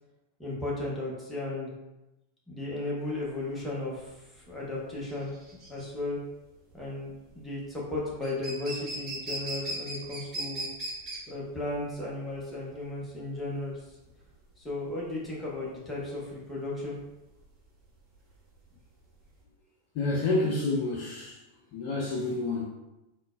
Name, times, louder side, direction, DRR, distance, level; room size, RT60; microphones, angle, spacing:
voice 1, 0.4-1.7 2.5-5.3 5.7-6.2 6.7-10.7 11.3-14.0 14.6-16.9, left 2 dB, 10° left, -5 dB, 0.9 m, -35 dB
sound 1, 3.1-19.4, right 1 dB, 30° right, 1.1 m, -40 dB
voice 2, 19.9-21.4 21.7-22.6, left 2 dB, 45° left, -3 dB, 0.4 m, -28 dB
3.7 x 2.1 x 2.3 m, 0.99 s
figure-of-eight pair, 90°, 0 cm